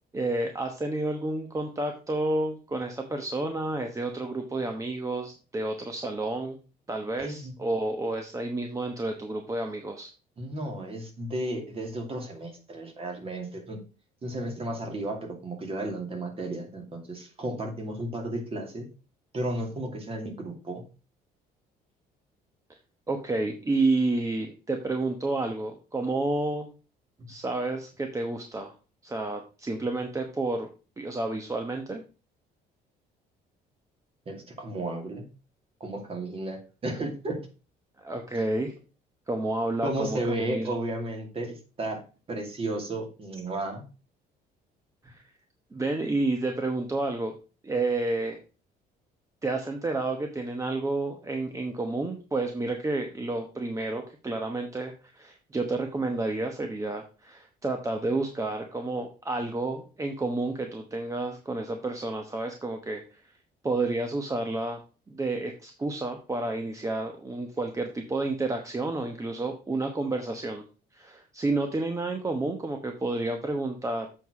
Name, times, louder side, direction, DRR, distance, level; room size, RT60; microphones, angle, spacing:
voice 1, 0.1-6.6 6.9-10.1 23.1-26.7 27.3-28.7 29.0-30.7 31.0-32.0 38.0-38.7 39.3-40.2 40.5-40.7 45.0-45.2 45.7-47.3 47.6-48.4 49.4-63.2 63.6-64.8 65.1-70.6 70.9-74.1, right 2 dB, 20° right, 4 dB, 1.0 m, -30 dB
voice 2, 7.2-7.5 10.4-13.8 14.2-18.9 19.3-20.8 27.2-27.3 34.3-35.2 35.8-37.4 38.3-38.4 39.8-42.0 42.3-43.8, right 1 dB, 35° right, 3 dB, 2.4 m, -33 dB
7.8 x 4.8 x 4.9 m, 0.34 s
cardioid pair, 110°, 17 cm